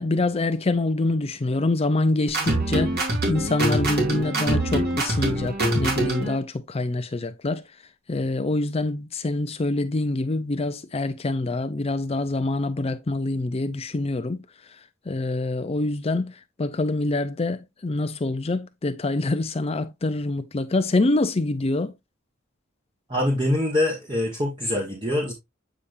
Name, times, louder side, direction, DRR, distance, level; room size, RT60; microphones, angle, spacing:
voice 1, 0.0-3.0 3.3-7.6 8.1-14.4 15.1-21.9, left 2 dB, 30° left, 0.5 m, -25 dB
sound 1, 2.3-6.3, right 1 dB, 50° right, 2.6 m, -24 dB
voice 2, 23.1-25.3, left 1 dB, 25° right, 1.5 m, -24 dB
8.5 x 5.1 x 2.6 m
head